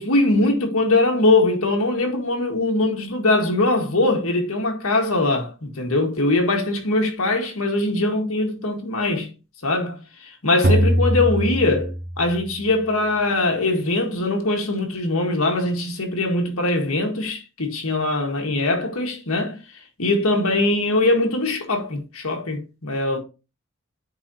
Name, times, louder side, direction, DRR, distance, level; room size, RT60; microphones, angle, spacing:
voice 1, 0.0-9.3 9.6-23.2, left 2 dB, 75° left, 1.7 m, -22 dB
sound 1, 10.6-12.6, equal, 40° right, 0.8 m, -21 dB
9.4 x 4.1 x 2.9 m
head